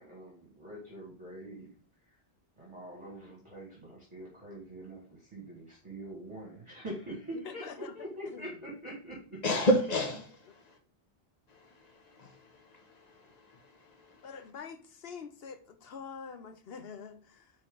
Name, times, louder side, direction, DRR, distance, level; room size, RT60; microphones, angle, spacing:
voice 1, 0.0-2.2 2.6-9.4, right 1 dB, 30° right, 1.9 m, -44 dB
voice 2, 7.3-7.9 8.3-8.5 14.2-17.5, left 6 dB, 70° left, 1.0 m, -45 dB
voice 3, 9.4-10.8 11.5-14.5, equal, 40° left, 1.1 m, -33 dB
8.8 x 3.4 x 3.8 m
omnidirectional pair, 1.0 m